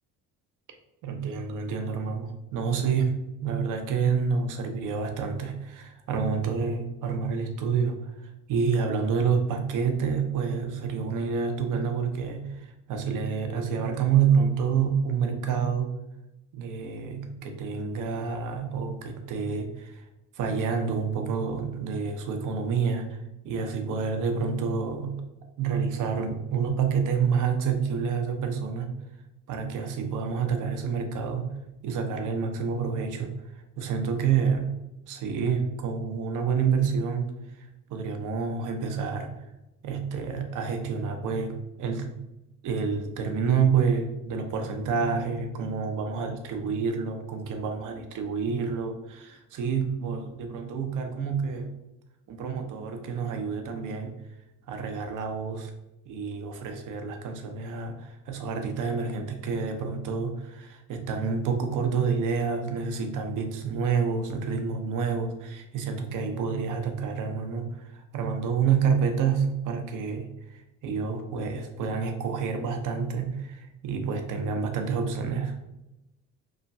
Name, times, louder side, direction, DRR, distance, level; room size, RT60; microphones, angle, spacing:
voice 1, 1.0-15.9 16.5-20.0 20.3-23.2 23.4-25.2 25.6-29.0 29.5-31.5 31.8-33.3 33.8-34.7 35.1-39.4 39.8-42.2 42.6-51.7 52.3-54.1 54.7-55.7 56.1-75.5, right 6 dB, 60° right, 5 dB, 0.6 m, -28 dB
3.1 x 2.2 x 2.6 m, 0.95 s
hypercardioid pair, 60°, 36 cm